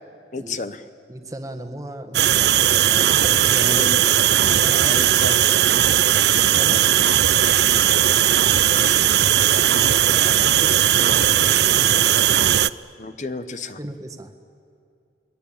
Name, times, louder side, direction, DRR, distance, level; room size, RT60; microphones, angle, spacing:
voice 1, 0.3-0.9 3.5-4.0 4.8-5.6 6.7-6.9 7.6-7.9 13.0-13.8, left 3 dB, 40° left, 12 dB, 0.9 m, -32 dB
voice 2, 1.1-2.5 2.8-3.9 4.2-5.0 6.3-6.8 8.7-8.9 9.5-12.5 13.8-14.3, right 1 dB, 20° right, 7 dB, 1.6 m, -36 dB
sound 1, 2.1-12.7, right 11 dB, 65° right, 0.5 m, -17 dB
28.5 x 21.0 x 8.7 m, 2.6 s
head